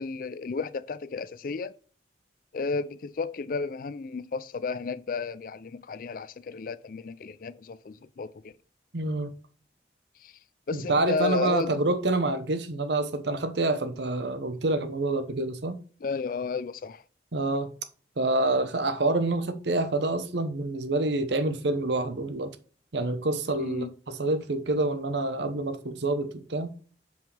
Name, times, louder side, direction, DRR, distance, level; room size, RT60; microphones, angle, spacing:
voice 1, 0.0-1.7 2.5-8.3 10.2-10.3 10.7-11.8 16.0-17.0 23.6-23.9, left 4 dB, 50° left, 0.4 m, -32 dB
voice 2, 8.9-9.3 10.7-15.8 17.3-17.7 18.2-22.5 22.9-26.7, right 2 dB, 75° right, 0.9 m, -27 dB
7.6 x 5.4 x 3.3 m
head